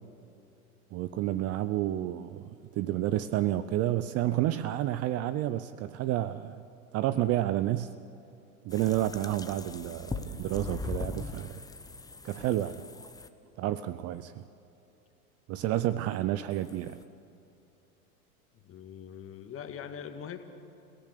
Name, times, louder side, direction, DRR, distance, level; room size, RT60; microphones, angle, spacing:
voice 1, 0.9-6.6 6.9-7.9 8.6-11.5 12.2-12.8 13.6-14.4 15.5-17.0, right 13 dB, 35° right, 14 dB, 0.6 m, -30 dB
sound 1, 8.7-13.3 16.5-17.0, left 4 dB, 10° left, 0.9 m, -40 dB
voice 2, 18.6-20.4, left 8 dB, 30° left, 7 dB, 2.1 m, -42 dB
29.0 x 17.0 x 6.7 m, 2.8 s
hypercardioid pair, 100°, 44 cm